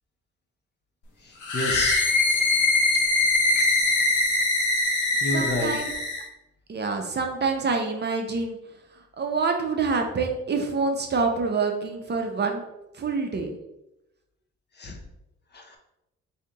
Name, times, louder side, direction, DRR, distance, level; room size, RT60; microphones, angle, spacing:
voice 1, 1.2-2.0 2.3-2.5 5.2-5.8 14.8-15.0 15.5-15.8, left 2 dB, 35° left, 2 dB, 0.7 m, -30 dB
sound 1, 1.4-6.3, left 2 dB, 80° left, 0.9 m, -22 dB
voice 2, 5.3-5.9 6.7-8.6 9.2-12.6 12.9-13.6, right 4 dB, 35° right, 3 dB, 0.6 m, -26 dB
3.3 x 2.8 x 3.8 m, 0.88 s
cardioid pair, 90°, 30 cm